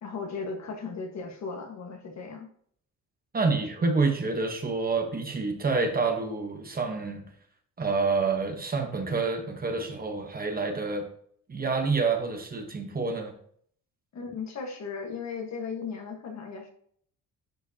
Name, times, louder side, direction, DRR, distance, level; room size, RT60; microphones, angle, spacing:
voice 1, 0.0-2.5 14.1-16.7, left 5 dB, 55° left, 3 dB, 1.5 m, -36 dB
voice 2, 3.3-7.2 7.8-11.1 11.5-13.4, right 4 dB, 30° right, 4 dB, 1.1 m, -28 dB
10.5 x 4.9 x 2.8 m, 0.62 s
cardioid pair, 135°, 32 cm